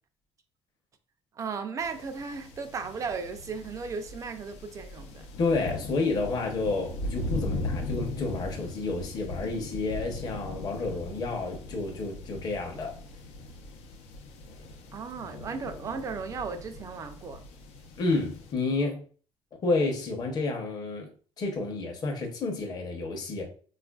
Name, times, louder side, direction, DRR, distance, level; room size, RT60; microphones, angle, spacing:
voice 1, 1.3-5.3 14.9-17.4, right 5 dB, 30° right, 0.4 m, -36 dB
sound 1, 1.8-18.5, left 2 dB, 90° left, 0.6 m, -39 dB
voice 2, 5.4-13.0 18.0-19.0 19.6-21.1 21.4-23.5, left 3 dB, 40° left, 0.7 m, -30 dB
4.3 x 2.4 x 2.3 m
cardioid pair, 155°, 10 cm